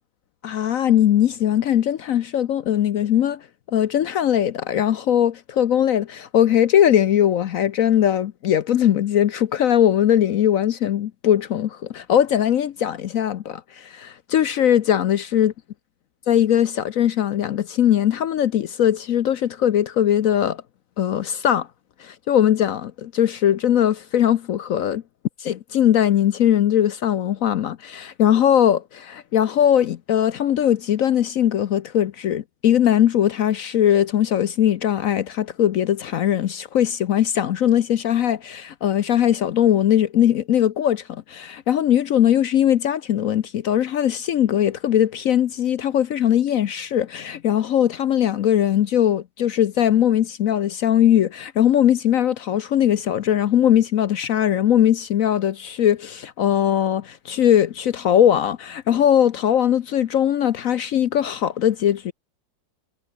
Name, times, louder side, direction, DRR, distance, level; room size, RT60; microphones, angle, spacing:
voice 1, 0.4-3.4 3.7-15.5 16.3-20.6 21.0-21.7 22.0-25.0 25.4-62.1, left 10 dB, 65° left, 0.8 m, -20 dB
omnidirectional pair, 2.1 m